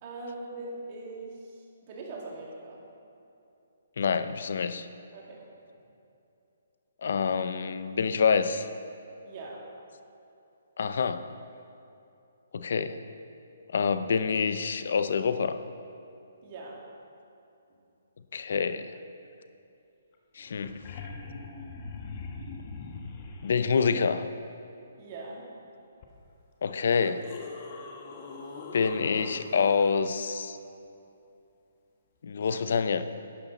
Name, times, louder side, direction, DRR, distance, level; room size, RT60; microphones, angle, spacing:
voice 1, 0.0-2.8 5.1-5.4 9.2-9.6 16.4-16.8 25.0-25.4, right 2 dB, 35° right, -3 dB, 2.5 m, -41 dB
voice 2, 4.0-4.9 7.0-8.7 10.8-11.2 12.5-13.0 13.7-15.6 18.3-19.0 20.4-20.7 23.4-24.3 26.6-27.2 28.7-30.6 32.2-33.0, left 5 dB, 65° left, 11 dB, 0.6 m, -27 dB
sound 1, 20.1-20.2 20.4-23.5 26.0-26.1 26.8-29.9 32.4-32.5, left 4 dB, 35° left, 1.2 m, -42 dB
11.5 x 9.1 x 4.1 m, 2.7 s
hypercardioid pair, 155°, 0 cm